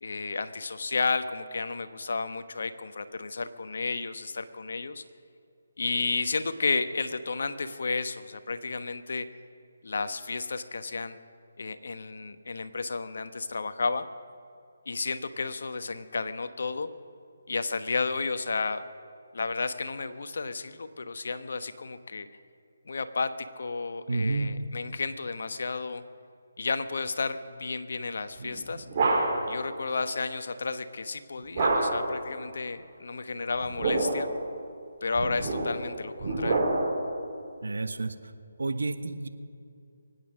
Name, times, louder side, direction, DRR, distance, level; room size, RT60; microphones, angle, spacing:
voice 1, 0.0-5.0 5.8-9.3 9.8-11.2 11.6-14.0 14.9-16.9 17.5-18.8 19.3-22.3 22.9-26.0 26.6-28.9 29.5-34.3 35.0-36.6, left 4 dB, 65° left, 10 dB, 1.1 m, -32 dB
voice 2, 24.1-24.5 37.6-38.1 38.6-39.3, right 3 dB, 80° right, 10 dB, 1.2 m, -29 dB
sound 1, 28.4-29.6 31.6-32.2 33.5-34.4 35.1-37.1, right 2 dB, 40° right, 4.5 m, -27 dB
24.0 x 9.2 x 6.3 m, 2.5 s
figure-of-eight pair, 155°, 0 cm